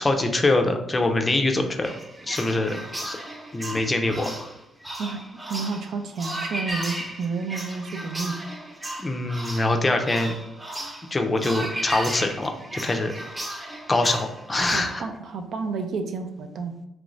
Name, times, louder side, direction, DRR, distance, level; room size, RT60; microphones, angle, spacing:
voice 1, 0.0-1.9 2.3-3.2 3.5-4.5 9.0-10.3 11.1-13.1 13.9-15.0, left 2 dB, 25° left, 4 dB, 0.4 m, -24 dB
sound 1, 1.8-15.0, right 1 dB, 20° right, 0.7 m, -35 dB
voice 2, 5.5-8.4 10.8-10.9 14.5-16.7, right 4 dB, 65° right, 5 dB, 0.4 m, -31 dB
3.1 x 2.5 x 3.1 m, 0.82 s
cardioid pair, 90°, 0 cm